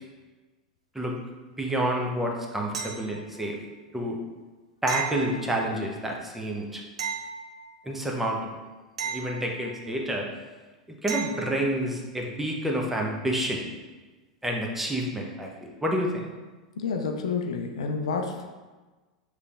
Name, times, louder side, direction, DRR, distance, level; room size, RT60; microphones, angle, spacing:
voice 1, 1.6-3.6 3.9-4.2 4.8-6.8 7.8-8.4 9.0-10.3 11.0-13.6 14.4-16.3, right 1 dB, 5° right, 0 dB, 0.7 m, -29 dB
sound 1, 2.7-3.5 4.9-5.9 7.0-8.0 9.0-10.0 11.1-11.7 14.4-14.5, right 6 dB, 75° right, 0.5 m, -35 dB
voice 2, 16.8-18.5, left 5 dB, 70° left, 4 dB, 0.4 m, -29 dB
6.5 x 3.2 x 2.4 m, 1.3 s
figure-of-eight pair, 85°, 3 cm